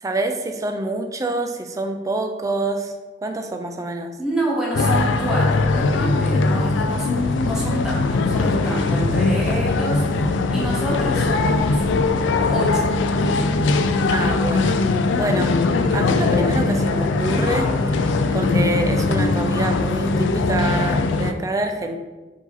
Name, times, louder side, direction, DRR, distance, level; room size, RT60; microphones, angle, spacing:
voice 1, 0.0-2.9 3.2-4.2 14.1-14.8 15.1-15.6 15.9-22.0, right 2 dB, 20° right, 6 dB, 0.3 m, -26 dB
voice 2, 4.2-11.8 12.5-12.9, right 1 dB, 5° right, -5 dB, 0.9 m, -28 dB
sound 1, 4.7-21.3, left 3 dB, 85° left, 0.3 m, -20 dB
4.8 x 2.8 x 4.0 m, 1.2 s
head